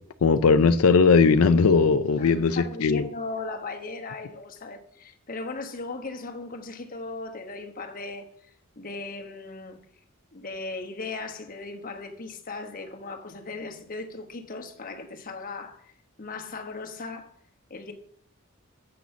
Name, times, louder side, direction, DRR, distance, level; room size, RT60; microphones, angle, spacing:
voice 1, 0.2-3.1, left 5 dB, 80° left, 0.5 m, -19 dB
voice 2, 2.2-8.3 8.8-9.8 10.3-15.9 16.2-17.3 17.7-17.9, left 3 dB, 40° left, 1.2 m, -37 dB
7.7 x 6.2 x 7.0 m
head